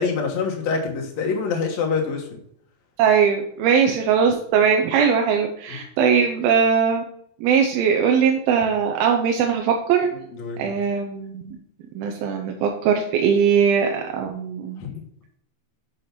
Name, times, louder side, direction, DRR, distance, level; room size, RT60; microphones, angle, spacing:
voice 1, 0.0-2.2 10.4-10.7 14.8-15.0, left 5 dB, 55° left, 1 dB, 2.3 m, -25 dB
voice 2, 3.0-7.0 7.4-10.1 10.6-11.6 12.0-14.9, right 7 dB, 90° right, 3 dB, 2.6 m, -20 dB
7.1 x 5.0 x 5.9 m, 0.68 s
omnidirectional pair, 4.2 m